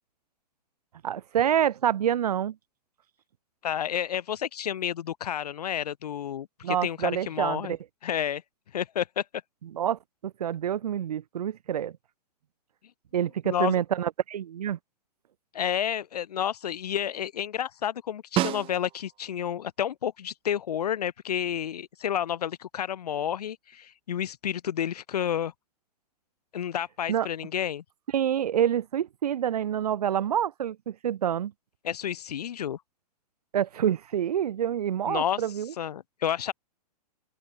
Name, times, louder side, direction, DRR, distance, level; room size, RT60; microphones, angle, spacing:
voice 1, 1.0-2.6 6.6-7.8 9.6-12.0 13.1-14.8 27.1-27.3 28.1-31.5 33.5-35.7, right 10 dB, 70° right, 5.8 m, -27 dB
voice 2, 3.6-7.8 8.0-8.4 8.7-9.2 13.4-13.8 15.5-25.5 26.5-27.8 31.8-32.8 35.1-35.4 35.8-36.5, left 9 dB, 75° left, 3.2 m, -30 dB
Snare drum, 18.4-19.3 23.7-23.8, right 15 dB, 25° right, 1.0 m, -29 dB
open air
hypercardioid pair, 125°, 20 cm